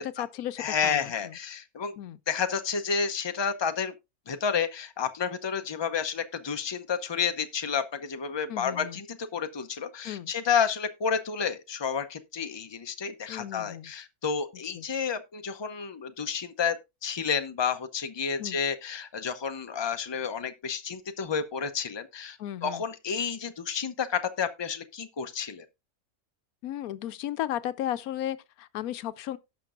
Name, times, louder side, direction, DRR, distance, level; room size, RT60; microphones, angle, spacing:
voice 1, 0.0-1.4 2.0-2.2 8.5-9.0 10.0-10.3 13.3-13.9 14.7-14.9 18.4-18.6 22.4-22.8 26.6-29.4, left 12 dB, 85° left, 1.1 m, -35 dB
voice 2, 0.6-2.0 2.3-3.9 4.3-16.8 17.0-25.6, left 6 dB, 25° left, 0.6 m, -30 dB
17.5 x 6.0 x 2.5 m
omnidirectional pair, 1.5 m